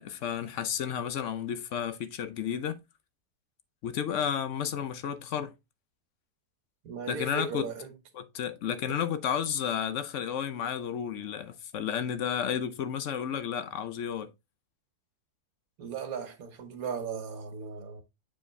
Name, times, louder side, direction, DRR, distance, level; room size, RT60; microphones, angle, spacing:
voice 1, 0.0-2.8 3.8-5.5 7.1-7.7 8.2-14.3, left 8 dB, 60° left, 0.9 m, -32 dB
voice 2, 6.8-8.0 15.8-18.0, right 6 dB, 65° right, 1.5 m, -37 dB
7.3 x 4.9 x 3.2 m
omnidirectional pair, 1.7 m